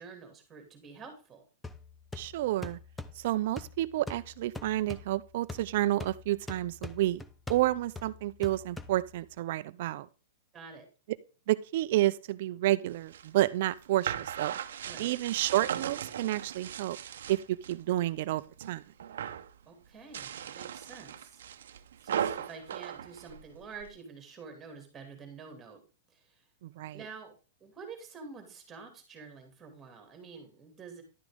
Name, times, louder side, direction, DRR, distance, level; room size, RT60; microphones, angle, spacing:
voice 1, 0.0-1.4 10.5-10.9 14.9-15.2 19.7-21.8 22.0-25.8 26.1-26.4 26.9-27.3 27.6-31.0, right 5 dB, 15° right, 2.6 m, -48 dB
sound 1, 1.6-9.4, left 3 dB, 5° left, 0.6 m, -45 dB
voice 2, 2.2-2.8 3.2-7.2 7.5-10.1 11.5-14.5 15.0-17.0 17.3-17.4 17.7-18.8 26.6-27.0, right 15 dB, 50° right, 0.6 m, -30 dB
sound 2, 12.9-17.8 18.2-18.7 19.0-19.5 20.0-23.9, right 9 dB, 85° right, 0.8 m, -38 dB
11.5 x 6.2 x 3.5 m
supercardioid pair, 165°, 0 cm